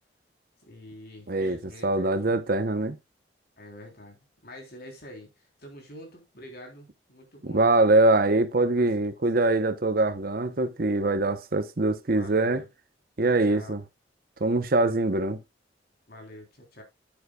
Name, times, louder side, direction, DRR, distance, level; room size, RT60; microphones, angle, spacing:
voice 1, 0.6-2.3 3.6-5.3 5.6-7.7 8.8-8.9 12.1-12.7 13.2-13.8 16.1-16.8, equal, 60° left, 3.5 m, -46 dB
voice 2, 1.3-1.6 1.8-3.0 7.4-12.6 13.2-13.8 14.4-15.4, right 2 dB, 55° right, 0.8 m, -23 dB
9.3 x 9.2 x 2.3 m
head